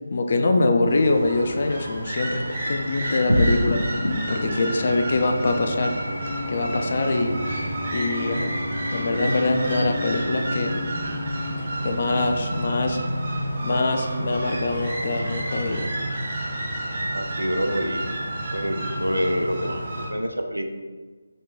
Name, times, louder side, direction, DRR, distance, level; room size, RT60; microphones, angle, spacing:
voice 1, 0.1-3.8 4.3-6.0 6.5-7.4 7.9-8.6 8.9-10.7 11.6-13.0 13.6-15.9, left 2 dB, 40° left, 5 dB, 0.3 m, -24 dB
sound 1, 0.9-20.1, right 1 dB, 35° right, 0.6 m, -30 dB
sound 2, 3.3-13.9, left 1 dB, 85° left, 0.7 m, -30 dB
voice 2, 17.1-18.1 18.5-20.8, equal, 80° right, 5 dB, 0.4 m, -27 dB
4.1 x 2.2 x 3.2 m, 1.4 s
figure-of-eight pair, 155°, 0 cm